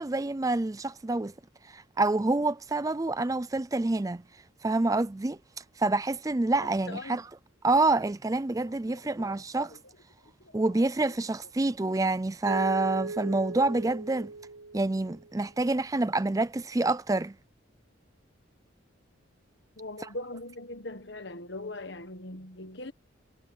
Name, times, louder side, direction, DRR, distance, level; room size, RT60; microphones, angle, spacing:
voice 1, 0.0-1.3 1.7-4.2 4.6-5.4 5.8-7.2 7.6-9.7 10.5-14.3 14.7-17.3, right 2 dB, 15° right, 0.4 m, -27 dB
voice 2, 6.9-7.2 8.9-9.4 9.7-9.8 10.4-10.8 11.1-11.2 19.8-22.9, left 2 dB, 60° left, 1.5 m, -41 dB
Mallet percussion, 12.5-15.4, right 3 dB, 85° right, 0.7 m, -38 dB
head